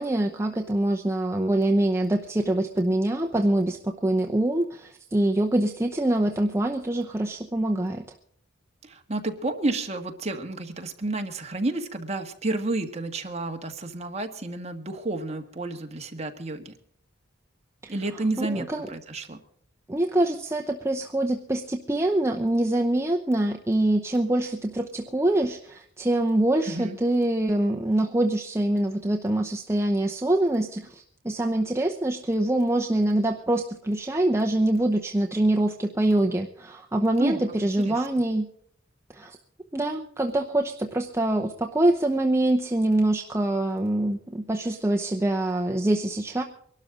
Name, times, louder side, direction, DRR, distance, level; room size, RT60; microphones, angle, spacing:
voice 1, 0.0-8.0 17.8-17.9 18.4-18.9 19.9-38.5 39.1-39.4 39.7-46.4, right 1 dB, 15° right, 2 dB, 0.7 m, -24 dB
voice 2, 8.8-16.7 17.9-19.4 26.6-27.0 37.2-37.4 37.8-38.1, right 2 dB, 30° right, 4 dB, 1.5 m, -30 dB
23.0 x 12.5 x 3.8 m, 0.64 s
head